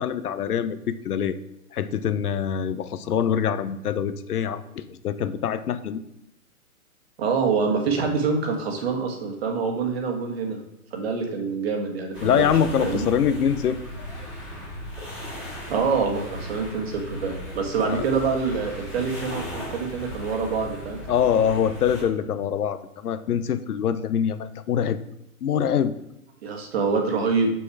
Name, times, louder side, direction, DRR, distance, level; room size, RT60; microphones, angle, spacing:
voice 1, 0.0-1.3 1.7-6.0 12.2-13.8 17.9-18.0 21.1-25.0 25.4-25.9, left 8 dB, 90° left, 12 dB, 0.7 m, -24 dB
voice 2, 7.2-10.6 10.9-12.4 12.8-13.1 15.7-21.0 26.4-27.5, right 5 dB, 45° right, 2 dB, 1.5 m, -26 dB
sound 1, 12.1-22.0, equal, 5° right, 1.7 m, -36 dB
6.3 x 5.6 x 4.7 m, 0.84 s
hypercardioid pair, 170°, 44 cm